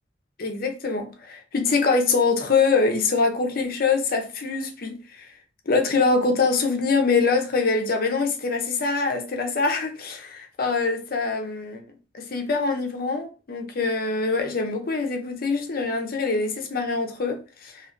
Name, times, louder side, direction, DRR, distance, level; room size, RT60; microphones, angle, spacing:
voice 1, 0.4-5.3 5.7-11.8 12.1-17.8, left 4 dB, 50° left, 0.6 m, -24 dB
3.1 x 2.8 x 2.5 m
head